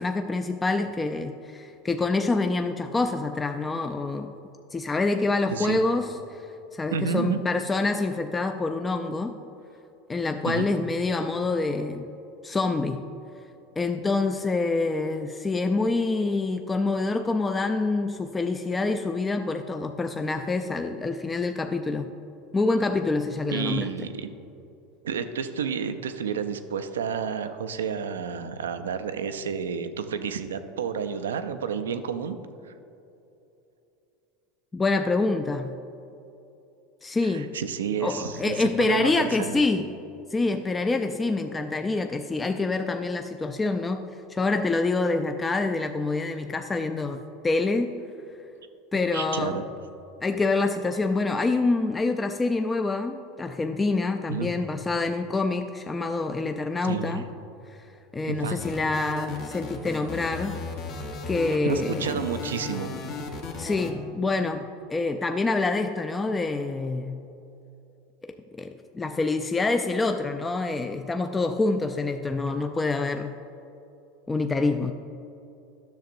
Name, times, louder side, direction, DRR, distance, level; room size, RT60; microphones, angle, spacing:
voice 1, 0.0-4.3 4.7-9.3 10.1-12.1 12.4-13.0 13.8-22.1 22.5-23.9 34.7-35.8 37.0-37.5 38.0-39.9 40.3-44.0 44.3-47.9 48.9-49.6 50.2-57.2 57.7-57.8 58.1-60.6 61.3-62.1 63.6-67.3 68.2-73.4 74.3-74.9, left 3 dB, 20° left, 6 dB, 0.3 m, -26 dB
voice 2, 6.9-7.4 10.5-10.7 23.5-24.3 25.0-32.4 32.6-32.7 37.2-39.6 49.1-49.7 54.3-54.5 56.8-57.2 58.3-58.6 61.6-62.9, right 6 dB, 85° right, 10 dB, 0.4 m, -30 dB
sound 1, 58.6-63.9, left 4 dB, 55° left, 0.9 m, -35 dB
10.5 x 6.5 x 2.6 m, 2.9 s
hypercardioid pair, 90°, 0 cm